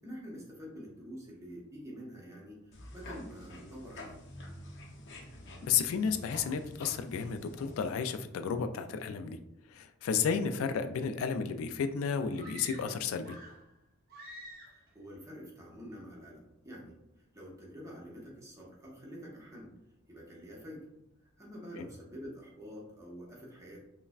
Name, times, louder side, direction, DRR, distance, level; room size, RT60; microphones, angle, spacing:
voice 1, 0.0-4.2 10.2-10.4 14.9-17.0 17.3-19.7 20.1-20.8 21.4-23.8, equal, 15° right, -4 dB, 1.0 m, -47 dB
sound 1, 2.7-7.9, left 1 dB, 60° left, 0.7 m, -48 dB
voice 2, 5.6-9.4 9.7-13.4, left 6 dB, 85° left, 8 dB, 0.3 m, -32 dB
sound 2, 12.3-13.7 14.1-14.9, right 1 dB, 50° right, 0.7 m, -49 dB
5.4 x 2.1 x 2.4 m, 0.86 s
head